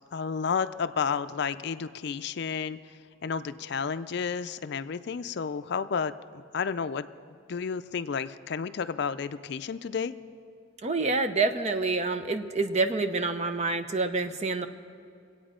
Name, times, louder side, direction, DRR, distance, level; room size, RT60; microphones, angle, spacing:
voice 1, 0.1-2.8 3.2-6.1 6.5-7.1 7.5-10.1, left 6 dB, 60° left, 12 dB, 0.4 m, -31 dB
voice 2, 10.8-14.7, right 3 dB, 35° right, 8 dB, 0.7 m, -27 dB
25.0 x 8.7 x 5.0 m, 2.4 s
head